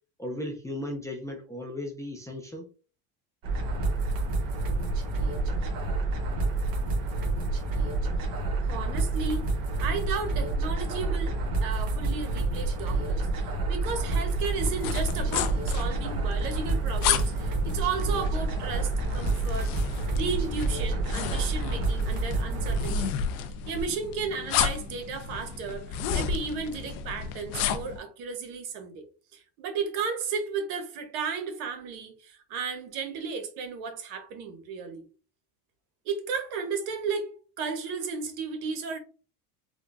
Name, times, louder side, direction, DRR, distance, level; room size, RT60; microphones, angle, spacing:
voice 1, 0.2-2.7, left 1 dB, 10° left, 0.3 m, -36 dB
sound 1, 3.4-23.1, right 2 dB, 50° right, 1.1 m, -28 dB
voice 2, 8.6-19.7 20.1-23.0 23.6-29.0 29.3-35.0 36.0-39.0, right 5 dB, 75° right, 1.0 m, -34 dB
sound 2, 14.6-28.0, left 8 dB, 75° left, 0.6 m, -33 dB
3.6 x 2.2 x 2.4 m
supercardioid pair, 110°, 43 cm